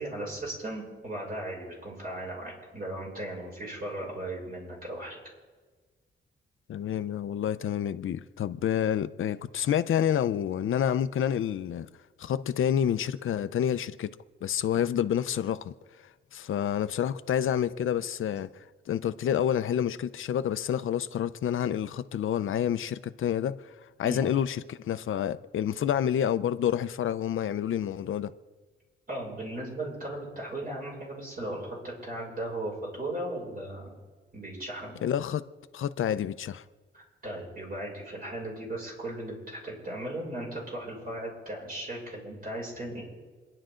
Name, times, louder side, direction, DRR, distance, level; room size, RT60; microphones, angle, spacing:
voice 1, 0.0-5.2 14.7-14.8 24.0-24.2 29.1-33.9 34.3-34.9 36.9-43.0, right 1 dB, 45° right, 6.6 m, -37 dB
voice 2, 6.7-11.9 12.2-14.1 14.4-15.7 16.3-23.6 24.0-28.3 35.0-35.4 35.7-36.6, left 9 dB, 75° left, 0.7 m, -28 dB
28.5 x 11.0 x 3.8 m
wide cardioid pair, 135°, 21 cm